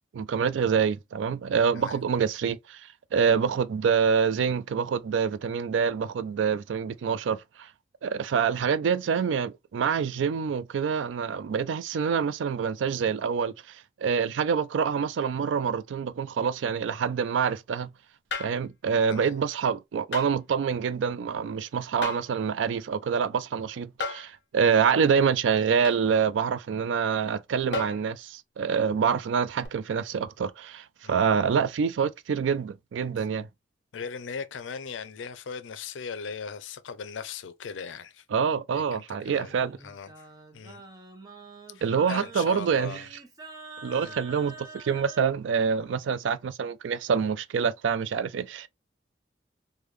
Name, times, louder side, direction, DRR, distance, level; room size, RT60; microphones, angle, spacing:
voice 1, 0.1-7.7 8.0-13.8 14.0-17.9 18.4-33.5 38.3-39.8 41.8-43.0 43.8-48.7, right 6 dB, 80° right, 0.3 m, -26 dB
sound 1, 18.3-18.6 20.1-20.3 22.0-22.4 24.0-24.3 25.8-26.0 27.7-28.1 29.6-29.7, left 3 dB, 65° left, 0.8 m, -33 dB
voice 2, 19.1-19.4 24.6-24.8 31.0-31.2 33.9-38.2 38.7-40.3 40.5-40.8 41.7-43.1 43.9-44.2, left 6 dB, 90° left, 0.5 m, -39 dB
Singing, 39.2-45.3, right 3 dB, 20° right, 0.7 m, -46 dB
3.4 x 2.2 x 3.1 m
head